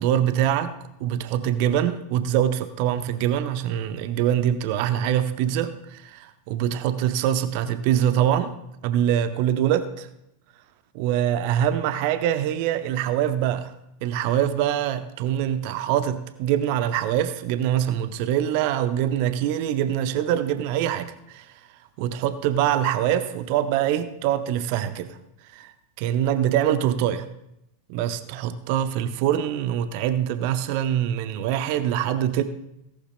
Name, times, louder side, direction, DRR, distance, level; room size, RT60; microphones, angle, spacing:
voice 1, 0.0-8.5 8.8-10.1 10.9-13.7 14.0-21.4 22.0-25.1 25.5-25.7 26.0-27.2 27.9-32.4, right 10 dB, 45° right, 12 dB, 0.7 m, -24 dB
17.5 x 11.5 x 2.2 m, 0.80 s
figure-of-eight pair, 90°, 0 cm